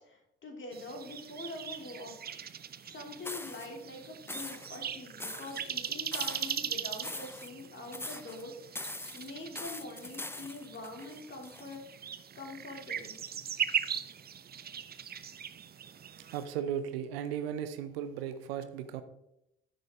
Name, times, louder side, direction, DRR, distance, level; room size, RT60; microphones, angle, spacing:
voice 1, 0.0-2.1 2.8-12.0 12.3-13.2, left 2 dB, 40° left, 1 dB, 2.9 m, -44 dB
sound 1, 0.7-16.5, right 8 dB, 30° right, 0.6 m, -40 dB
sound 2, 3.2-3.7 4.3-4.8 5.2-6.6 6.9-7.7 7.9-8.4 8.7-11.8, left 2 dB, 5° left, 0.8 m, -42 dB
voice 2, 16.3-19.0, right 9 dB, 70° right, 11 dB, 0.7 m, -36 dB
10.5 x 6.7 x 3.6 m, 0.83 s
figure-of-eight pair, 45°, 31 cm